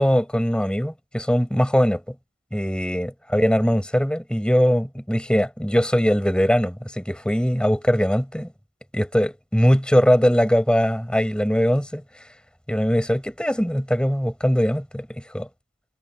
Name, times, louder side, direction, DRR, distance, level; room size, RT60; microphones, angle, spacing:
voice 1, 0.0-2.1 2.5-8.5 8.9-12.0 12.7-15.1 15.3-15.5, equal, 5° left, 5.9 m, -21 dB
head